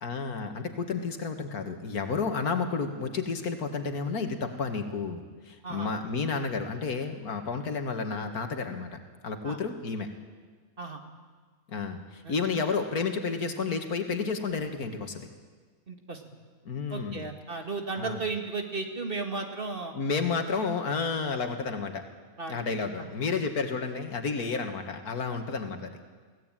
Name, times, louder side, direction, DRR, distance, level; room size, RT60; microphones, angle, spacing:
voice 1, 0.0-10.1 11.7-15.3 16.7-17.3 18.0-18.2 19.9-22.1 22.5-26.0, left 4 dB, 90° left, 6 dB, 2.3 m, -31 dB
voice 2, 15.9-16.2 16.9-20.0 22.4-22.6 23.0-23.1, right 3 dB, 40° right, 4 dB, 2.3 m, -34 dB
23.5 x 17.0 x 9.1 m, 1.5 s
omnidirectional pair, 1.5 m